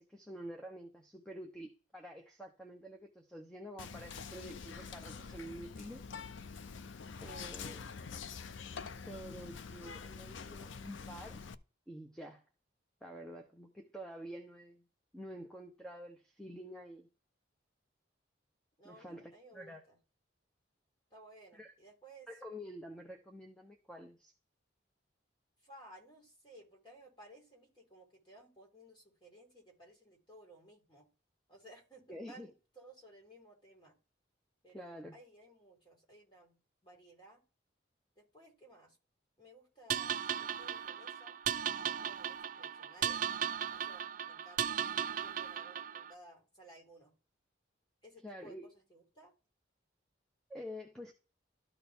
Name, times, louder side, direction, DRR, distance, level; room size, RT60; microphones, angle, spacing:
voice 1, 0.0-6.1 7.2-7.9 9.1-11.4 11.9-12.4 13.0-14.8 15.1-17.1 18.8-19.8 21.5-21.7 22.3-24.3 32.1-32.5 34.7-35.2 48.2-48.7 50.5-51.1, equal, 5° left, 0.8 m, -48 dB
Whispering, 3.8-11.5, left 5 dB, 80° left, 0.5 m, -46 dB
voice 2, 18.8-20.0 21.1-22.3 25.6-31.1 31.5-34.0 34.6-37.4 38.1-39.0 39.4-41.4 41.8-43.2 43.7-44.8 45.2-47.1 48.0-49.3, right 1 dB, 25° left, 3.5 m, -58 dB
sound 1, 39.9-46.1, right 9 dB, 45° right, 0.3 m, -36 dB
13.0 x 4.4 x 3.5 m
head